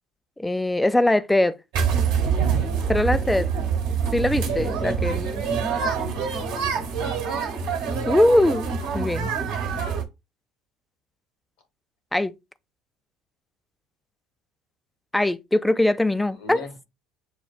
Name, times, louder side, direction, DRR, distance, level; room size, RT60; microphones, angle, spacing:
voice 1, 0.4-1.6 2.9-3.5 4.1-5.4 8.1-8.7 8.9-9.3 12.1-12.3 15.1-16.6, left 1 dB, 10° left, 0.4 m, -21 dB
sound 1, 1.7-10.0, right 6 dB, 70° right, 1.0 m, -25 dB
voice 2, 4.5-6.1 6.6-7.1 16.3-16.8, left 3 dB, 75° left, 1.5 m, -42 dB
7.1 x 2.4 x 2.3 m
hypercardioid pair, 75°, 0 cm